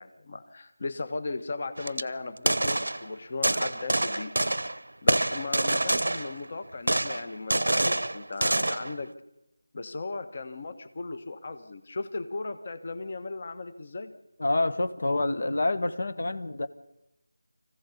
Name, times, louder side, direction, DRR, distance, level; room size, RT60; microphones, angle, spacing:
voice 1, 0.0-4.3 5.0-9.1 9.7-14.1, left 3 dB, 35° left, 11 dB, 1.2 m, -37 dB
sound 1, 1.8-2.0 2.4-3.1 3.4-4.8 5.1-6.4 6.9-8.9, right 1 dB, 85° right, 1.0 m, -26 dB
voice 2, 14.4-16.7, left 2 dB, 55° left, 12 dB, 1.2 m, -27 dB
24.5 x 15.5 x 8.3 m, 0.92 s
figure-of-eight pair, 175°, 0 cm